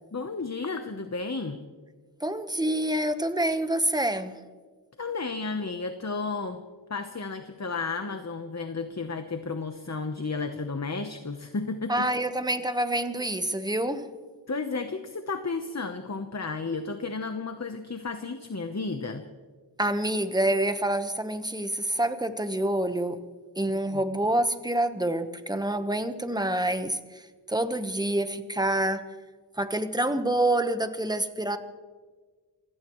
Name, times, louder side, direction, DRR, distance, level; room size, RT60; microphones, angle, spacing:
voice 1, 0.1-1.6 5.0-6.6 6.9-12.1 14.5-19.2 23.9-24.0, left 4 dB, 35° left, 7 dB, 1.0 m, -33 dB
voice 2, 2.2-4.3 11.9-14.1 19.8-23.2 23.6-27.0 27.5-29.0 29.6-31.6, right 1 dB, 10° right, 9 dB, 1.1 m, -27 dB
27.0 x 16.5 x 3.1 m, 1.5 s
wide cardioid pair, 60°, 45 cm